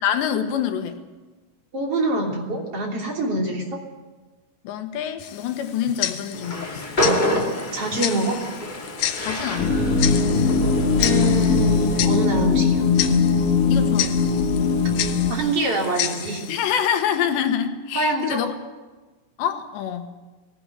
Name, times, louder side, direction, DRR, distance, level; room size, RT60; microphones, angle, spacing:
voice 1, 0.0-1.0 4.7-6.9 9.2-10.0 13.7-14.3 16.5-18.5 19.4-20.1, left 9 dB, 90° left, 7 dB, 3.6 m, -26 dB
voice 2, 1.7-3.8 7.7-8.4 11.0-12.8 15.3-16.4 17.9-18.4, right 2 dB, 35° right, 0 dB, 3.7 m, -25 dB
Tick-tock, 5.2-16.9, left 11 dB, 70° left, 2.3 m, -31 dB
Train, 6.3-11.6, equal, 15° left, 1.7 m, -28 dB
sound 1, 9.6-15.3, left 4 dB, 40° left, 1.2 m, -20 dB
19.0 x 18.0 x 9.1 m, 1.2 s
omnidirectional pair, 4.9 m